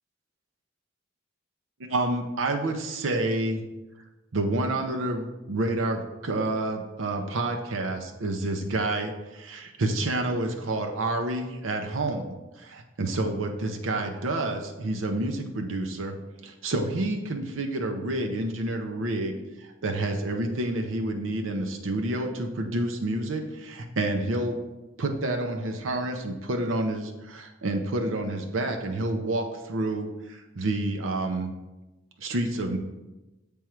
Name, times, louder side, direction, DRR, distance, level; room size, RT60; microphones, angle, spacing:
voice 1, 1.9-3.6 4.3-16.2 16.4-19.3 19.6-24.6 25.0-31.5 32.2-32.8, right 2 dB, 90° right, 3 dB, 0.7 m, -29 dB
7.5 x 3.5 x 4.5 m, 1.1 s
head